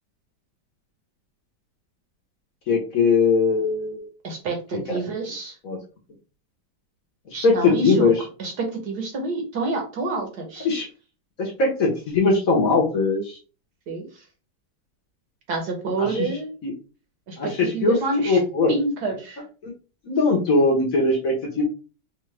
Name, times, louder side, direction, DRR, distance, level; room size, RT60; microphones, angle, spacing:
voice 1, 2.7-4.0 4.7-5.0 5.6-5.8 7.3-8.1 10.6-10.9 11.4-13.4 16.0-16.3 16.6-16.7 17.4-18.0 18.3-18.7 19.6-19.7 20.1-21.6, left 3 dB, 55° left, 0 dB, 1.2 m, -20 dB
voice 2, 4.2-5.6 7.3-8.1 8.4-10.7 13.9-14.1 15.5-16.5 17.3-18.4 18.7-19.4, right 3 dB, 60° right, 3 dB, 1.4 m, -28 dB
4.6 x 2.4 x 3.2 m, 0.35 s
omnidirectional pair, 2.1 m